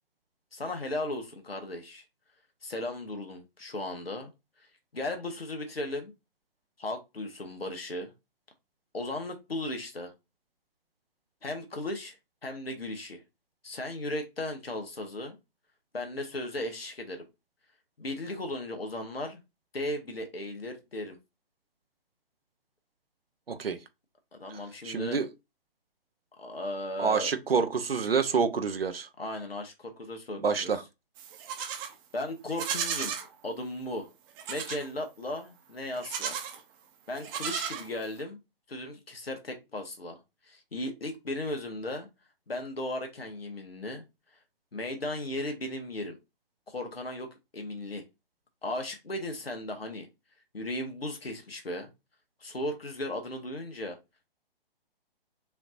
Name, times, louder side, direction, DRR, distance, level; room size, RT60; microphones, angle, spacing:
voice 1, 0.5-2.0 2.6-4.3 4.9-6.1 6.8-8.1 8.9-10.1 11.4-12.2 12.4-13.2 13.6-15.4 15.9-17.2 18.0-19.4 19.7-21.2 24.3-25.2 26.4-27.3 29.2-30.7 32.1-33.1 33.4-34.1 34.5-36.4 37.1-38.4 38.7-40.2 40.4-42.1 42.5-44.0 44.7-46.2 46.7-47.3 47.5-48.0 48.6-50.1 50.5-51.9 52.4-54.0, left 1 dB, 85° left, 1.4 m, -36 dB
voice 2, 23.5-23.8 24.8-25.3 27.0-29.1 30.4-30.8, right 5 dB, 80° right, 0.9 m, -27 dB
Livestock farm animals working animals, 31.2-31.9 32.5-33.3 34.4-34.9 35.9-36.6 37.1-38.2, right 8 dB, 20° right, 0.9 m, -34 dB
5.6 x 2.9 x 2.5 m
figure-of-eight pair, 130°, 29 cm